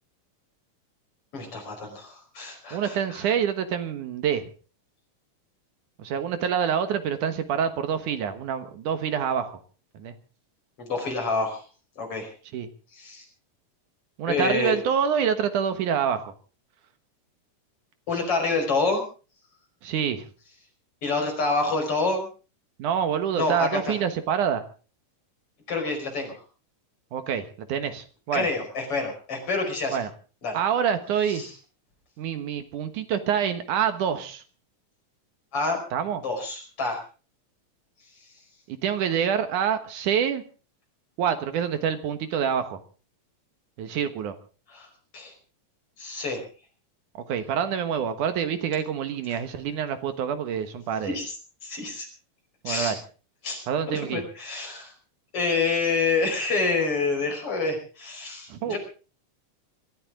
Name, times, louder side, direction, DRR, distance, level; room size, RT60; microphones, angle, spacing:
voice 1, 1.3-3.3 10.8-11.6 12.0-12.3 12.9-13.2 14.3-14.8 18.1-19.0 21.0-22.3 23.3-24.0 25.7-26.4 28.3-30.0 30.4-30.6 31.3-31.5 35.5-35.8 36.2-37.0 44.7-44.9 45.1-45.3 46.0-46.4 49.3-49.4 51.0-51.3 51.6-52.1 52.7-52.9 53.4-54.9 55.3-58.8, left 3 dB, 45° left, 2 dB, 6.0 m, -27 dB
voice 2, 2.7-4.4 6.0-9.5 10.0-10.1 12.5-12.7 14.2-16.3 19.8-20.3 22.8-24.6 27.1-28.5 29.9-30.1 30.5-31.4 32.2-34.4 35.9-36.2 38.7-40.4 41.2-42.8 43.8-44.3 47.3-51.2 52.6-53.0 53.7-54.2 58.5-58.8, right 8 dB, 75° right, 10 dB, 2.8 m, -26 dB
24.5 x 14.0 x 3.7 m, 0.37 s
omnidirectional pair, 3.7 m